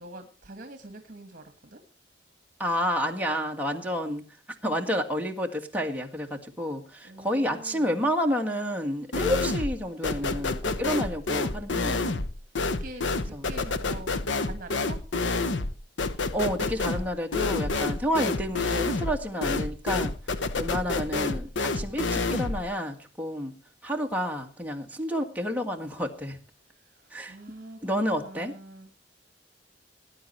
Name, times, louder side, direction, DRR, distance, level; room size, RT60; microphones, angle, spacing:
voice 1, 0.0-1.8 7.0-7.9 12.6-14.1 14.4-15.0 26.7-28.9, right 1 dB, 50° right, 8 dB, 1.7 m, -44 dB
voice 2, 2.6-4.4 4.6-12.2 13.3-13.4 16.3-23.5 23.8-26.4 27.1-27.4 27.8-28.5, equal, 10° right, 1 dB, 1.8 m, -30 dB
sound 1, 9.1-9.8 10.0-22.6, left 3 dB, 90° left, 0.9 m, -28 dB
18.5 x 9.7 x 4.3 m, 0.37 s
head